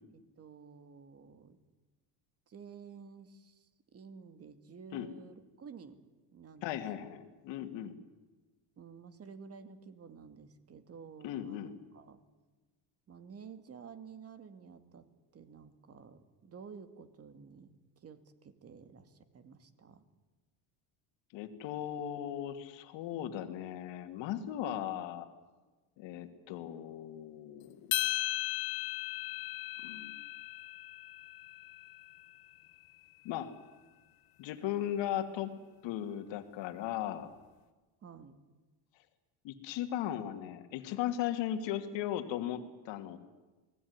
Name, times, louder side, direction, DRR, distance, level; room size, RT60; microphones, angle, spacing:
voice 1, 0.1-1.6 2.5-6.0 6.3-7.1 8.8-12.2 13.1-20.1 38.0-38.4, right 6 dB, 35° right, 10 dB, 2.4 m, -52 dB
voice 2, 6.6-8.0 11.2-11.7 21.3-25.3 26.0-27.9 29.8-30.1 33.2-33.5 34.4-35.5 35.8-37.3 39.4-43.2, left 11 dB, 75° left, 7 dB, 2.8 m, -37 dB
sound 1, 27.9-32.3, left 16 dB, 55° left, 1.7 m, -37 dB
29.0 x 20.0 x 9.7 m, 1.2 s
cardioid pair, 150°, 44 cm